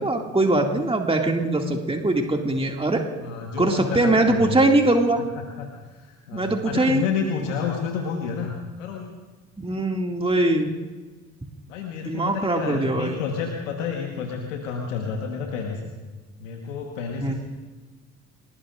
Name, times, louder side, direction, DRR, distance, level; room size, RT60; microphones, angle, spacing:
voice 1, 0.0-3.1 3.6-5.2 6.3-7.0 9.6-10.8 12.1-13.2 17.2-17.3, right 2 dB, 15° right, 1 dB, 2.4 m, -22 dB
voice 2, 3.2-4.6 5.3-9.1 11.7-15.9 16.4-17.3, left 6 dB, 85° left, 1 dB, 1.5 m, -30 dB
29.5 x 19.0 x 2.6 m, 1.3 s
hypercardioid pair, 50°, 37 cm